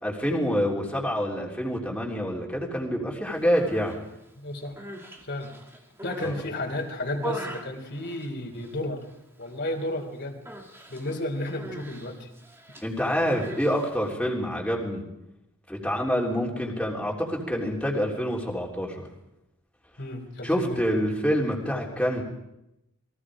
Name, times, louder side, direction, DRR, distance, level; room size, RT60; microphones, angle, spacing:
voice 1, 0.0-4.0 6.2-6.4 12.8-15.0 15.7-19.1 20.4-22.2, equal, 5° left, -2 dB, 3.4 m, -27 dB
Human voice, 3.4-4.0 4.6-6.4 6.8-8.8 9.0-9.5 9.8-10.0 10.5-14.1, right 1 dB, 10° right, 2.0 m, -42 dB
voice 2, 4.4-4.8 5.3-5.5 6.0-9.0 9.4-10.4 10.9-12.3 20.0-20.9, left 1 dB, 50° left, 2 dB, 3.5 m, -32 dB
28.5 x 22.0 x 5.0 m, 0.87 s
head